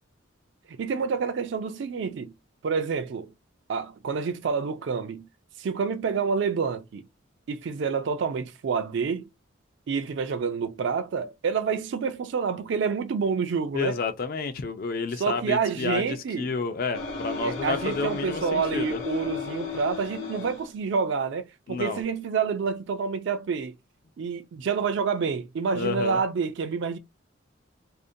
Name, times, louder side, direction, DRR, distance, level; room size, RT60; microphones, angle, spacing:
voice 1, 0.7-2.3 2.6-3.3 3.7-5.3 5.6-7.0 7.5-9.3 9.9-14.0 15.2-16.5 17.4-23.7 24.2-27.0, right 5 dB, 60° right, 0.3 m, -28 dB
voice 2, 13.7-19.0 21.7-22.0 25.7-26.2, left 4 dB, 45° left, 0.3 m, -30 dB
sound 1, 16.9-20.7, left 5 dB, 80° left, 0.8 m, -34 dB
2.5 x 2.1 x 2.6 m
head